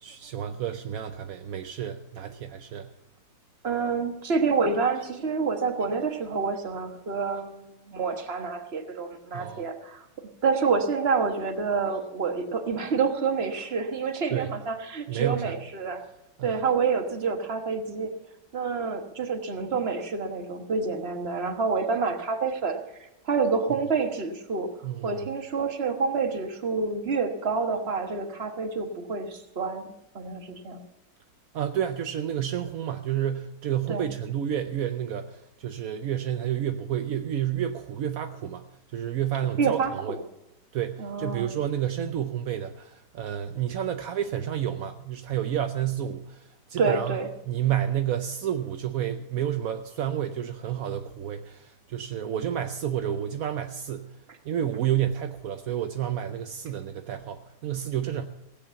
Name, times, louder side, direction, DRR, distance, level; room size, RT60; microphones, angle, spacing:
voice 1, 0.0-2.9 9.3-9.6 14.3-14.5 15.1-15.5 16.4-16.6 24.8-25.2 31.5-38.6 38.9-40.1 40.7-47.2 47.5-54.1 54.4-58.3, right 10 dB, 65° right, 7 dB, 0.8 m, -30 dB
voice 2, 3.6-10.1 10.4-16.0 16.4-18.1 18.5-22.8 23.2-24.7 25.0-30.8 33.9-34.1 39.6-40.2 41.0-41.5 46.8-47.3 54.3-54.4, right 5 dB, 35° right, 5 dB, 1.4 m, -28 dB
16.5 x 8.4 x 7.0 m, 0.88 s
omnidirectional pair, 2.2 m